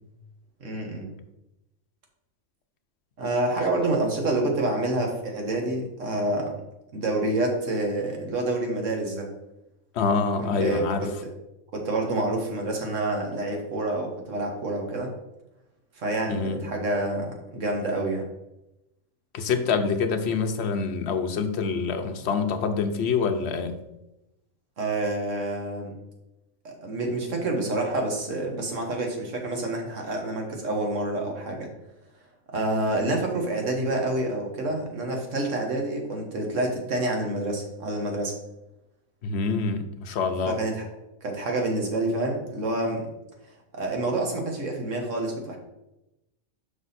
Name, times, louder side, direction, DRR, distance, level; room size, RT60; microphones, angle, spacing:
voice 1, 0.6-1.1 3.2-6.6 6.9-9.3 10.4-11.3 11.7-15.1 16.0-18.2 24.8-25.9 26.7-31.7 32.5-38.3 40.5-40.9 41.2-43.1 43.7-45.6, right 2 dB, 65° right, 1 dB, 1.6 m, -28 dB
voice 2, 9.9-11.1 16.3-16.6 19.3-23.8 39.2-40.6, left 5 dB, 60° left, 7 dB, 0.9 m, -26 dB
6.1 x 5.4 x 4.1 m, 0.92 s
omnidirectional pair, 1.4 m